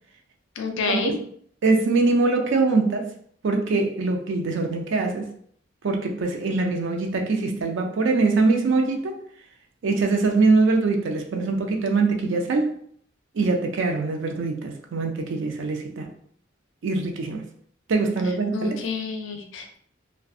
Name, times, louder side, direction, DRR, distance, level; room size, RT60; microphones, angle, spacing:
voice 1, 0.6-1.1 18.5-19.8, left 4 dB, 70° left, 0.4 m, -29 dB
voice 2, 1.6-3.1 3.4-5.3 5.8-9.2 9.8-12.7 13.3-16.1 16.8-17.5 17.9-18.8, right 3 dB, 65° right, 0.4 m, -23 dB
2.5 x 2.2 x 2.4 m
head